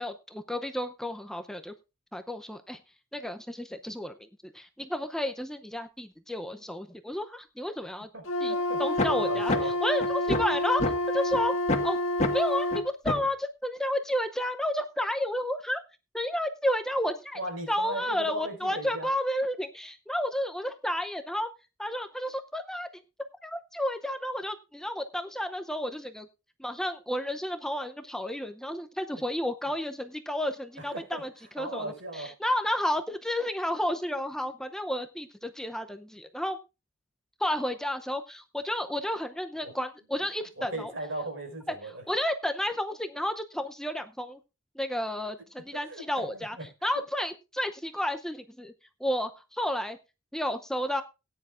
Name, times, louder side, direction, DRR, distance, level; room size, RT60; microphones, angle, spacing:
voice 1, 0.0-1.7 2.1-2.8 3.1-4.1 4.4-8.1 8.4-8.5 8.8-10.8 11.1-11.6 11.8-12.0 12.3-15.8 16.1-17.4 17.7-21.5 21.8-22.9 23.4-26.3 26.6-31.3 31.5-36.6 37.4-40.9 42.1-44.4 44.8-46.6 46.8-48.7 49.0-50.0 50.3-51.0, left 1 dB, 5° left, 7 dB, 0.6 m, -31 dB
voice 2, 8.1-9.8 17.3-19.1 29.1-29.2 30.8-31.2 31.6-32.4 39.6-39.7 40.6-42.0 45.9-46.7, right 2 dB, 75° right, 4 dB, 4.8 m, -38 dB
Wind instrument woodwind instrument, 8.2-12.9, left 1 dB, 90° left, 1.8 m, -29 dB
sound 1, 9.0-9.1 9.5-9.6 10.0-10.9 11.3-11.4 11.7-11.9 12.2-12.3 12.7-12.8 13.1-13.3, left 2 dB, 35° left, 1.6 m, -26 dB
18.0 x 9.8 x 2.5 m, 0.28 s
head